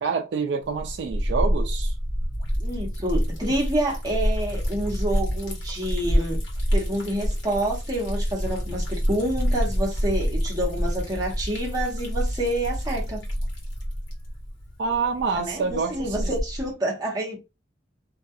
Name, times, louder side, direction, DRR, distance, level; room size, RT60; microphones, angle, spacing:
voice 1, 0.0-1.9 14.8-16.3, right 5 dB, 65° right, 0.3 m, -27 dB
Liquid, 0.6-16.7, equal, 75° left, 1.0 m, -27 dB
voice 2, 2.6-6.4 6.7-13.2 15.3-17.4, right 1 dB, 20° right, 0.9 m, -28 dB
2.4 x 2.3 x 2.6 m
head